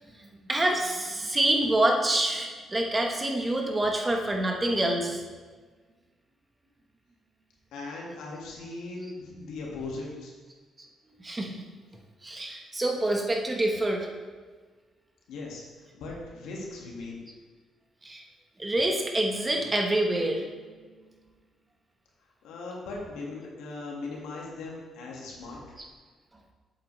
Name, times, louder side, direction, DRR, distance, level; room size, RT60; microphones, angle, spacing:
voice 1, 0.2-5.2 10.8-10.9 11.2-11.5 12.2-14.1 18.0-18.2 18.6-20.4 25.8-25.9, right 1 dB, 20° right, 2 dB, 1.2 m, -27 dB
voice 2, 7.7-10.3 15.3-15.6 15.9-17.2 22.4-25.6, left 3 dB, 85° left, -2 dB, 1.9 m, -38 dB
8.3 x 7.5 x 3.3 m, 1.5 s
cardioid pair, 90°, 0 cm